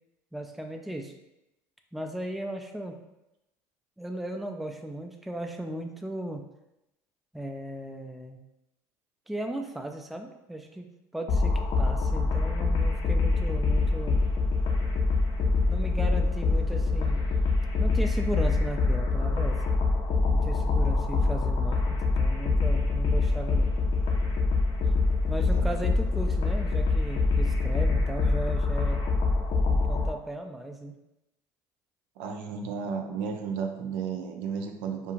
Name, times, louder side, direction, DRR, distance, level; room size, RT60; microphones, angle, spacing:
voice 1, 0.3-1.1 1.9-3.0 4.0-6.5 7.3-8.4 9.3-10.9 11.1-14.2 15.7-17.3 17.8-19.6 20.3-23.7 25.3-29.0 29.7-30.9, right 1 dB, ahead, 4 dB, 0.3 m, -36 dB
sound 1, 11.3-30.1, left 3 dB, 55° left, 0.6 m, -25 dB
voice 2, 32.2-35.1, right 6 dB, 75° right, 4 dB, 0.4 m, -33 dB
2.5 x 2.3 x 3.0 m, 0.90 s
supercardioid pair, 80°, 9 cm